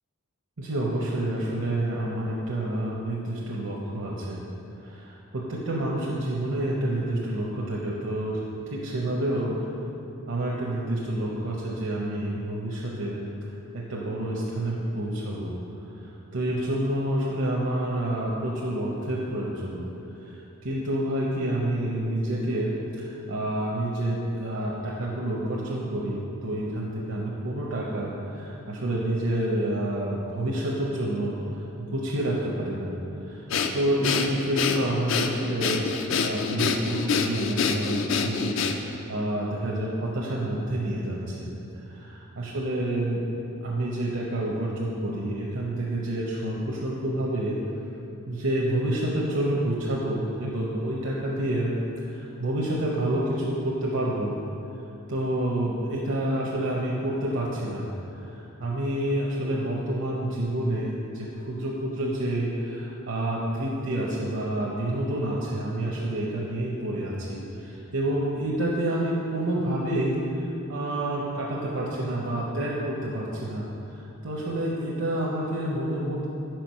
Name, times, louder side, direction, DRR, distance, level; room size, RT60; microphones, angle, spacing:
voice 1, 0.6-4.4 5.3-8.4 8.7-9.7 10.3-13.2 13.7-15.5 15.9-19.8 20.2-32.9 33.2-43.2 43.6-47.6 48.3-54.3 55.1-76.3, right 1 dB, 65° right, -4 dB, 0.6 m, -28 dB
Breathing, 33.5-39.0, left 5 dB, 60° left, 0.4 m, -26 dB
4.9 x 4.5 x 5.5 m, 2.8 s
head